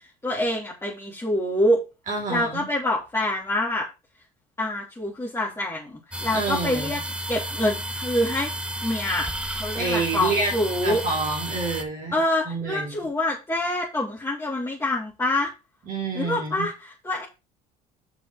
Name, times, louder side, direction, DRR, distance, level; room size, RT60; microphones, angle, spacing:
voice 1, 0.2-1.8 2.3-3.9 4.6-7.0 7.3-8.5 8.8-9.3 9.5-11.0 12.1-15.5 16.1-17.2, left 1 dB, 15° left, -4 dB, 3.2 m, -26 dB
voice 2, 2.1-2.7 6.3-7.0 9.8-10.5 10.8-12.1 12.5-12.9 15.9-16.7, right 3 dB, 45° right, -1 dB, 3.5 m, -28 dB
sound 1, 6.1-11.8, right 1 dB, 5° right, 1.5 m, -32 dB
6.2 x 5.9 x 6.1 m, 0.28 s
hypercardioid pair, 75°, 19 cm